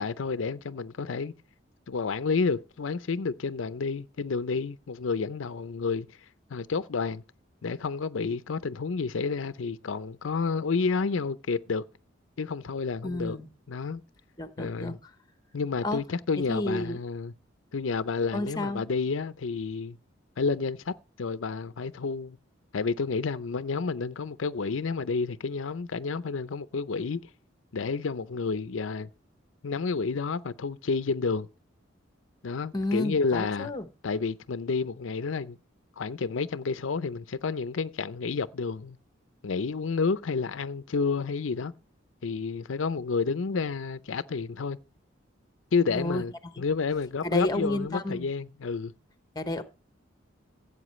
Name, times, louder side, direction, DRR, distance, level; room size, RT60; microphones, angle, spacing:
voice 1, 0.0-1.3 1.9-6.1 6.5-7.2 7.6-11.8 12.4-13.4 13.7-14.0 14.6-15.0 15.5-17.3 17.7-20.0 20.4-22.4 22.7-27.2 27.7-29.1 29.6-31.5 32.4-33.7 34.0-35.6 36.0-39.0 39.4-41.7 42.2-44.8 45.7-48.9, left 4 dB, 80° left, 0.5 m, -30 dB
voice 2, 13.0-13.5 14.4-15.0 15.8-16.0 16.5-17.0 18.3-18.8 32.7-33.9 45.9-46.2 46.6-46.7 47.2-48.3 49.3-49.6, left 1 dB, 20° left, 1.0 m, -31 dB
16.0 x 8.2 x 3.1 m
head